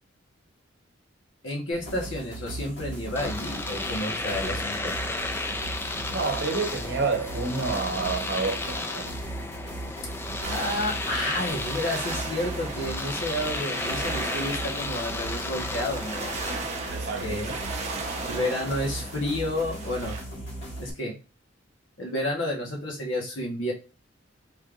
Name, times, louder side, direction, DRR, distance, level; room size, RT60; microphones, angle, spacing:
voice 1, 1.4-4.9 10.5-16.3 17.2-17.5 18.3-20.2 20.8-21.2 22.0-23.7, left 1 dB, 90° left, 1.2 m, -30 dB
sound 1, 1.7-20.9, right 1 dB, 60° left, 1.8 m, -38 dB
Domestic sounds home sounds, 3.2-16.6, left 2 dB, 10° left, 0.3 m, -33 dB
voice 2, 6.1-9.1 16.9-17.4, right 4 dB, 60° right, 0.9 m, -29 dB
sound 2, 10.4-20.2, right 3 dB, 35° right, 0.8 m, -37 dB
5.3 x 3.4 x 2.5 m
head